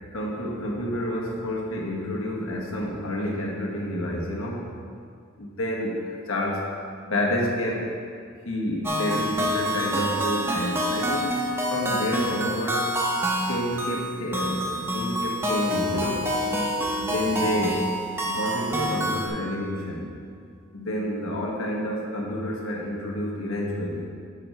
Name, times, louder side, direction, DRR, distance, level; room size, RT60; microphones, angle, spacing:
voice 1, 0.1-4.6 5.4-6.7 7.1-7.9 8.4-11.4 11.7-12.9 13.5-16.3 16.9-17.9 18.2-20.1 20.7-24.0, left 1 dB, 80° left, -1 dB, 1.3 m, -29 dB
sound 1, 8.8-19.3, equal, 10° right, 0.7 m, -27 dB
9.0 x 6.2 x 3.4 m, 2.2 s
head